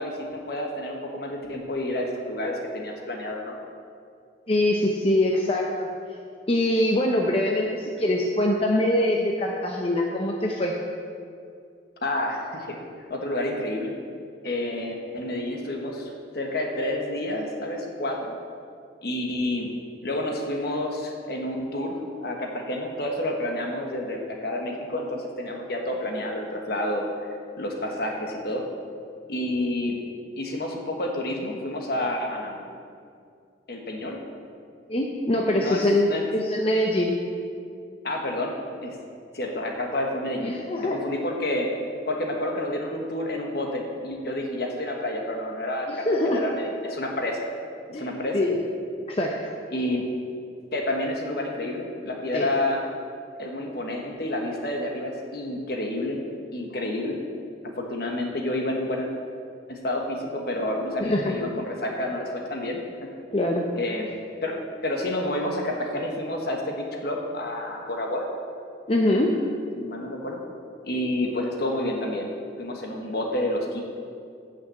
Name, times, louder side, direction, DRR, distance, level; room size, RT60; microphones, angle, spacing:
voice 1, 0.0-3.5 12.0-12.8 13.1-13.9 14.4-18.2 19.0-19.7 20.0-27.0 27.6-28.6 29.3-30.0 30.4-32.7 33.7-34.2 35.6-35.8 36.1-36.3 38.0-39.0 39.3-41.7 42.1-47.4 47.9-48.4 49.7-50.0 50.7-52.8 53.4-56.2 56.5-57.2 57.8-59.1 59.7-62.8 63.7-64.1 64.4-68.3 69.7-70.4 70.8-72.3 72.6-73.8, left 1 dB, 55° left, 1 dB, 1.4 m, -29 dB
voice 2, 4.5-5.7 6.5-10.8 34.9-37.2 40.4-41.0 45.9-46.4 47.9-48.5 49.1-49.5 52.3-52.5 61.0-61.3 63.3-63.7 68.9-69.4, left 1 dB, 30° left, 0 dB, 0.7 m, -23 dB
9.1 x 6.0 x 7.7 m, 2.4 s
head